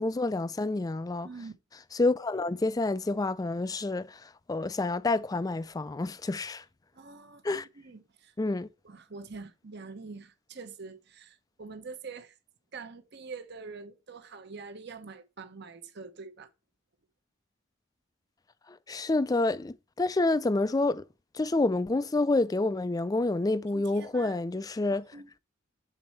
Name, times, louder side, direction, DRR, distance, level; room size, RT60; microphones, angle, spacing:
voice 1, 0.0-1.3 1.9-6.6 7.4-7.7 8.4-8.7 18.7-21.0 21.3-25.1, left 2 dB, 20° left, 0.3 m, -28 dB
voice 2, 6.9-8.3 8.8-12.4 12.7-16.5 23.7-24.4 24.9-25.4, right 4 dB, 55° right, 0.9 m, -45 dB
7.9 x 4.2 x 4.4 m
head